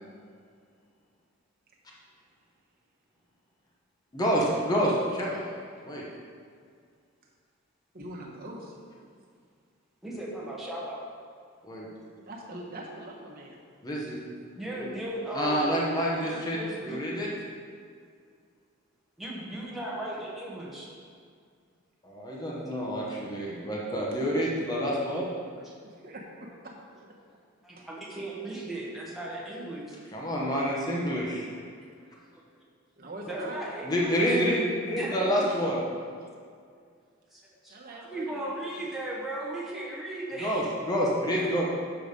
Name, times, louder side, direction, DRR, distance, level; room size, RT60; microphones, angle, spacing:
voice 1, 4.1-5.4 5.8-6.0 11.6-11.9 13.8-14.2 14.7-14.9 15.3-16.6 16.8-17.3 22.0-25.3 30.1-31.5 33.8-35.8 40.4-41.6, equal, 20° left, -4 dB, 1.1 m, -28 dB
voice 2, 7.9-8.7 12.2-13.6 25.8-27.1 27.8-27.9 33.0-33.6 37.7-38.7 41.4-41.5, right 1 dB, 50° right, -2 dB, 1.2 m, -43 dB
voice 3, 10.0-11.0 14.5-15.8 16.2-17.0 19.2-20.9 25.4-25.7 27.6-29.9 31.8-31.9 32.5-32.6 33.2-34.4 34.9-35.6 37.3-40.6, right 1 dB, ahead, -6 dB, 1.3 m, -37 dB
6.9 x 5.0 x 5.3 m, 2.2 s
head